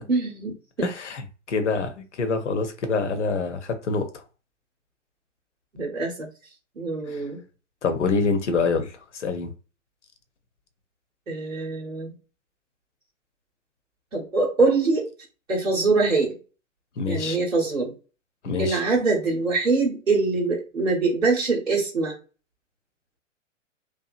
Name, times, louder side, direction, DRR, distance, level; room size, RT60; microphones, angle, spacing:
voice 1, 0.1-0.9 5.7-6.3 6.8-7.4 11.3-12.1 14.1-15.1 15.5-16.3 17.1-17.9 18.6-22.1, right 3 dB, 85° right, 1.0 m, -23 dB
voice 2, 0.8-4.1 7.1-7.2 7.8-9.5 17.0-17.4 18.4-18.8, left 4 dB, 65° left, 0.8 m, -26 dB
2.8 x 2.3 x 2.4 m
figure-of-eight pair, 110°, 38 cm